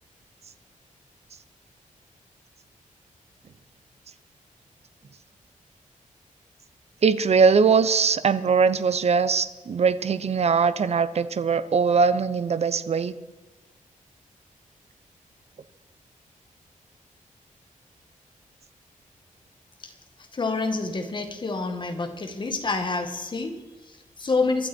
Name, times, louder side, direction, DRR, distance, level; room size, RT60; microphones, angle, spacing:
voice 1, 7.0-13.1, right 5 dB, 50° right, 13 dB, 0.8 m, -21 dB
voice 2, 20.3-24.7, left 3 dB, 35° left, 5 dB, 2.0 m, -28 dB
23.5 x 12.5 x 4.5 m, 1.1 s
wide cardioid pair, 145°, 14 cm